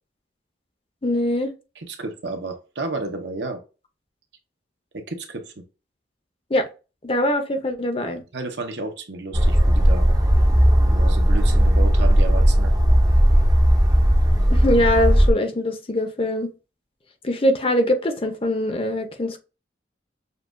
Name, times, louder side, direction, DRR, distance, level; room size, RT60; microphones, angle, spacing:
voice 1, 1.0-1.5 6.5-6.7 7.0-8.2 14.5-16.5 17.2-19.4, left 1 dB, 30° left, 0.6 m, -22 dB
voice 2, 1.8-3.6 4.9-5.6 8.3-10.1 10.9-12.7, right 2 dB, 65° right, 0.9 m, -32 dB
sound 1, 9.3-15.3, equal, 20° right, 0.6 m, -16 dB
6.7 x 2.3 x 2.5 m
head